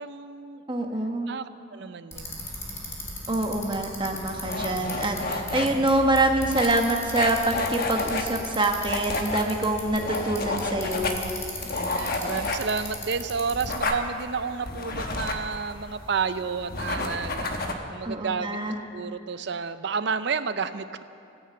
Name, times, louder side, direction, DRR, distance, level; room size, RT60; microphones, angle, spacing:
voice 1, 0.0-0.6 1.3-2.5 11.7-17.6 17.9-18.6 18.9-21.0, right 5 dB, 60° right, 12 dB, 0.5 m, -31 dB
voice 2, 0.7-1.3 3.3-11.2 18.0-18.7, right 2 dB, 25° right, 3 dB, 1.1 m, -25 dB
Bicycle, 2.1-13.8, left 1 dB, 15° left, 2.2 m, -38 dB
sound 1, 4.1-17.7, left 2 dB, 50° left, 1.0 m, -31 dB
14.5 x 9.7 x 7.7 m, 2.6 s
head